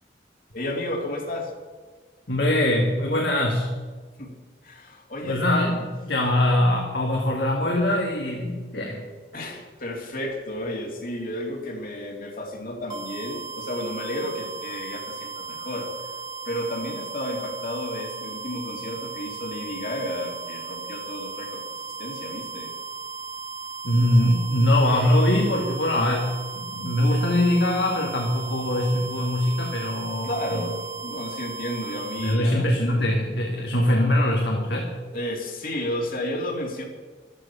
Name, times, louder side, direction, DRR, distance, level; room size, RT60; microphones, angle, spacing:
voice 1, 0.5-1.5 4.2-4.3 4.6-5.4 9.3-15.9 16.4-21.6 22.0-22.7 30.2-32.9 33.6-33.7 35.1-36.8, left 1 dB, 50° left, 0 dB, 2.7 m, -32 dB
voice 2, 2.3-3.7 5.2-9.0 23.8-30.6 32.2-34.9, left 1 dB, 75° left, -1 dB, 2.2 m, -22 dB
sound 1, 12.9-32.4, right 4 dB, 20° right, 2.7 m, -36 dB
14.5 x 13.0 x 5.8 m, 1.4 s
head